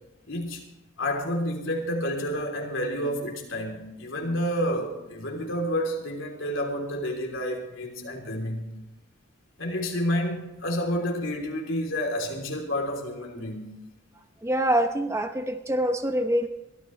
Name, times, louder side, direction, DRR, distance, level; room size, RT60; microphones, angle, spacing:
voice 1, 0.3-0.7 1.0-8.8 9.6-13.8, equal, 70° left, 3.4 m, -29 dB
voice 2, 14.4-16.5, right 1 dB, 15° right, 0.8 m, -25 dB
22.5 x 14.0 x 3.3 m
head